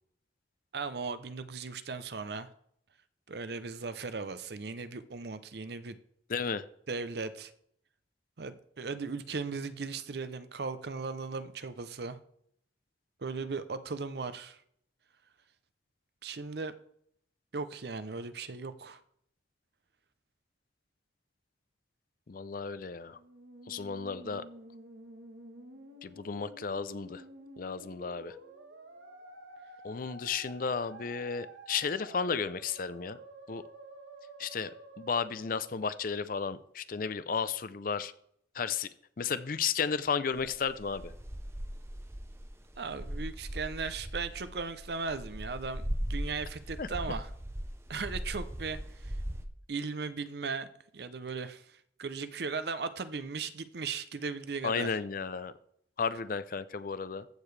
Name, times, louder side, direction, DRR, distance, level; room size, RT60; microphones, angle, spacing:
voice 1, 0.7-2.5 3.3-6.0 6.9-7.5 8.4-12.2 13.2-14.6 16.2-16.7 17.5-19.0 42.8-45.8 46.1-47.3 47.9-49.2 49.7-50.7 50.9-54.9, right 4 dB, 60° right, 0.6 m, -37 dB
voice 2, 6.3-6.6 22.3-23.2 23.7-24.4 26.0-27.2 27.6-28.3 29.8-33.2 33.5-33.6 34.4-34.7 35.0-38.1 38.5-38.9 39.2-41.0 46.8-46.9 54.6-55.5 56.0-57.3, left 5 dB, 50° left, 0.5 m, -33 dB
Musical instrument, 23.1-36.4, right 2 dB, 85° right, 1.4 m, -51 dB
sound 1, 40.4-49.5, equal, 15° right, 0.6 m, -39 dB
14.5 x 6.8 x 3.3 m
head